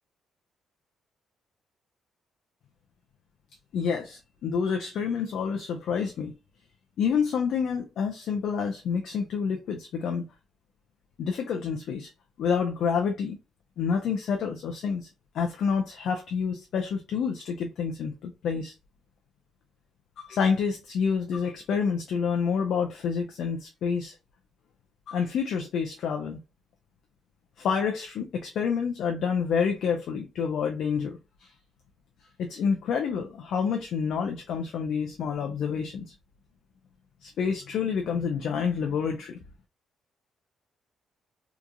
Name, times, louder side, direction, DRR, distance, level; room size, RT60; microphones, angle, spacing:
voice 1, 3.7-6.3 7.0-10.3 11.2-12.1 12.4-13.4 13.8-15.1 15.3-18.7 20.2-24.1 25.1-26.4 27.6-31.5 32.4-36.1 37.2-39.4, left 6 dB, 75° left, 0.4 m, -28 dB
2.8 x 2.4 x 2.2 m
cardioid pair, 90°, 0 cm